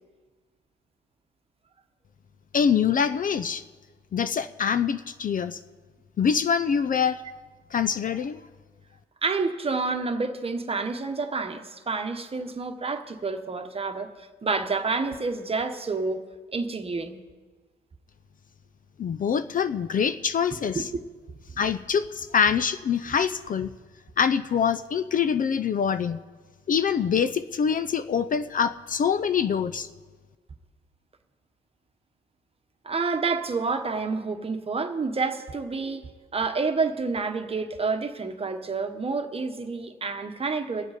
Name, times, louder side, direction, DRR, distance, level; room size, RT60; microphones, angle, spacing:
voice 1, 2.5-3.6 4.1-5.6 6.2-7.2 7.7-8.4 19.0-20.9 21.6-23.7 24.2-26.2 26.7-29.9, left 7 dB, 45° left, 12 dB, 0.5 m, -25 dB
voice 2, 9.2-16.2 16.5-17.2 20.7-20.9 32.8-36.0 36.3-41.0, right 4 dB, 30° right, 7 dB, 1.2 m, -29 dB
22.5 x 8.0 x 5.0 m, 1.4 s
cardioid pair, 90°, 20 cm